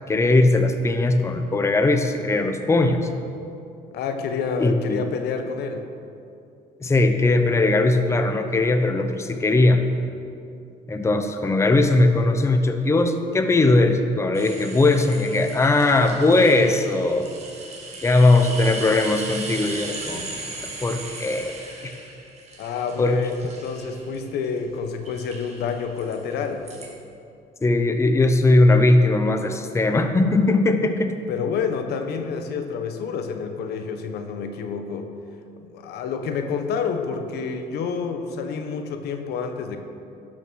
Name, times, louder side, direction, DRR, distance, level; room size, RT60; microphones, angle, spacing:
voice 1, 0.1-3.1 4.6-5.0 6.8-9.8 10.9-17.4 18.0-20.3 20.8-21.9 23.0-23.2 27.6-31.1, left 2 dB, 15° left, 7 dB, 0.7 m, -19 dB
voice 2, 3.9-5.9 22.6-23.3 23.6-26.7 31.3-35.1 35.6-39.8, left 5 dB, 75° left, 6 dB, 1.0 m, -28 dB
sound 1, 14.3-24.6 25.1-26.9, right 3 dB, 40° right, 2.2 m, -37 dB
12.0 x 6.3 x 6.2 m, 2.6 s
cardioid pair, 110°, 17 cm